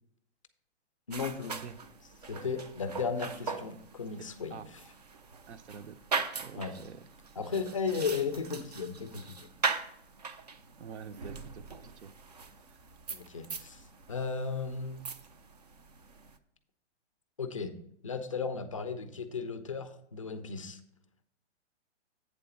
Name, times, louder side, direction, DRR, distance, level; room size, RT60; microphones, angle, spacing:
voice 1, 1.1-1.6 2.3-4.6 6.5-6.7 7.4-9.5 13.1-13.8 14.1-15.0 17.4-17.7 18.0-20.8, left 5 dB, 30° left, 10 dB, 0.4 m, -35 dB
sound 1, 1.1-16.4, right 5 dB, 35° right, 0.4 m, -40 dB
voice 2, 5.5-6.0 6.3-7.0 10.8-12.1, right 7 dB, 70° right, 13 dB, 0.7 m, -46 dB
8.3 x 3.9 x 7.0 m, 0.72 s
hypercardioid pair, 175°, 36 cm